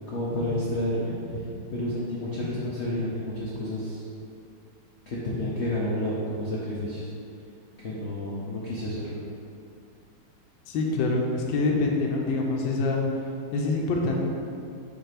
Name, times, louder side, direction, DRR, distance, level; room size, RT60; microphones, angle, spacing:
voice 1, 0.1-1.1 1.7-4.1 5.1-7.1 7.8-9.0, left 1 dB, 85° left, -7 dB, 0.6 m, -30 dB
voice 2, 10.7-13.0 13.5-14.2, left 3 dB, 70° left, -1 dB, 1.3 m, -25 dB
7.3 x 2.7 x 5.0 m, 2.5 s
omnidirectional pair, 2.4 m